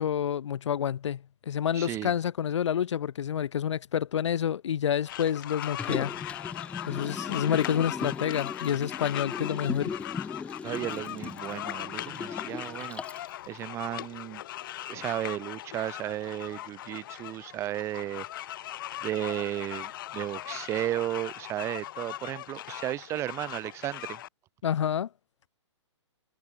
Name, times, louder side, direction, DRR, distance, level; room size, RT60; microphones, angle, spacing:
voice 1, 0.0-6.2 6.9-9.9 24.6-25.1, left 9 dB, 70° left, 0.7 m, -28 dB
voice 2, 1.7-2.1 7.1-7.2 10.6-14.4 14.8-18.3 18.6-18.7 19.0-24.2, right 14 dB, 15° right, 1.8 m, -34 dB
sound 1, 5.1-24.3, left 13 dB, 45° left, 5.0 m, -39 dB
Liquid, 5.6-13.3 13.7-13.8, left 5 dB, 10° left, 3.6 m, -38 dB
hypercardioid pair, 155°, 16 cm